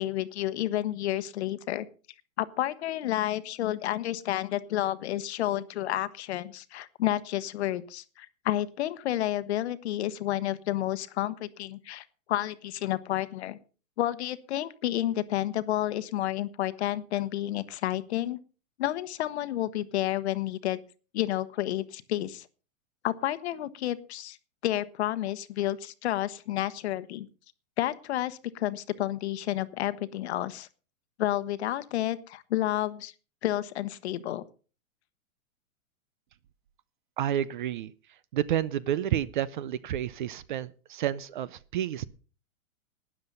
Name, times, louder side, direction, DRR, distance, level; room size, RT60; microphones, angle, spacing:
voice 1, 0.0-1.9 2.4-13.6 14.0-18.4 18.8-20.8 21.1-22.5 23.0-24.4 24.6-27.3 27.8-30.7 31.2-33.1 33.4-34.4, left 13 dB, 50° left, 14 dB, 1.1 m, -30 dB
voice 2, 37.2-37.9 38.3-42.1, right 11 dB, 40° right, 20 dB, 0.5 m, -30 dB
12.5 x 9.9 x 5.4 m, 0.36 s
hypercardioid pair, 150°, 41 cm